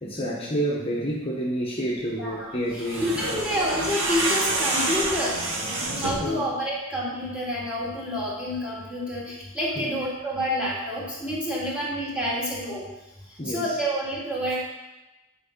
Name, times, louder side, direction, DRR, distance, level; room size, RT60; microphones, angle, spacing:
voice 1, 0.0-3.4 6.2-6.4 9.8-9.9 13.4-13.6, right 1 dB, 30° left, -4 dB, 1.1 m, -29 dB
voice 2, 2.2-2.6 3.0-5.4 6.0-12.8 13.5-14.6, equal, 5° right, -8 dB, 2.5 m, -28 dB
sound 1, 2.7-6.3, right 2 dB, 85° right, 1.6 m, -27 dB
9.6 x 4.7 x 5.3 m, 1.0 s
head